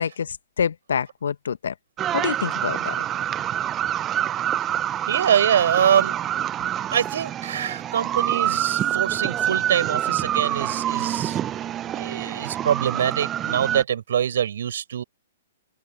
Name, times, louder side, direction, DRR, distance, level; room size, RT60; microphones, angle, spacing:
voice 1, 0.0-1.7 2.1-3.0, left 7 dB, 70° left, 1.2 m, -27 dB
sound 1, 2.0-13.8, right 11 dB, 25° right, 0.9 m, -26 dB
voice 2, 5.1-6.2 6.9-11.4 11.9-15.0, right 9 dB, 65° right, 7.9 m, -24 dB
open air
figure-of-eight pair, 115°, 0 cm